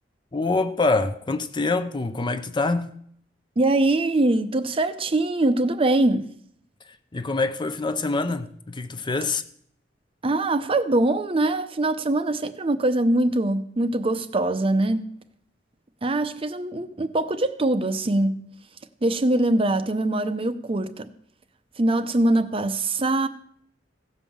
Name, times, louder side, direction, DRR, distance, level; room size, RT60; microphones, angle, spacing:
voice 1, 0.3-2.9 7.1-9.4, left 3 dB, 25° left, 0.6 m, -25 dB
voice 2, 3.6-6.3 10.2-15.1 16.0-18.5 19.0-21.1 21.8-23.3, right 2 dB, 30° right, 0.6 m, -23 dB
16.0 x 5.4 x 7.1 m
head